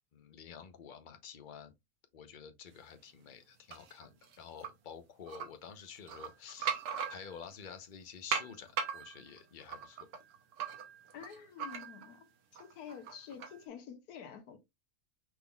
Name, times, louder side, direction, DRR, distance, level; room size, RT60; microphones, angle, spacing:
voice 1, 0.1-1.7 2.1-10.1, left 7 dB, 40° left, 0.8 m, -50 dB
sound 1, 3.7-4.7 5.3-5.5 6.0-7.6 8.3-12.2 12.6-13.6, right 7 dB, 80° right, 1.5 m, -39 dB
voice 2, 11.1-12.2 12.6-14.6, left 8 dB, 85° left, 1.4 m, -48 dB
6.2 x 3.7 x 2.3 m
omnidirectional pair, 1.6 m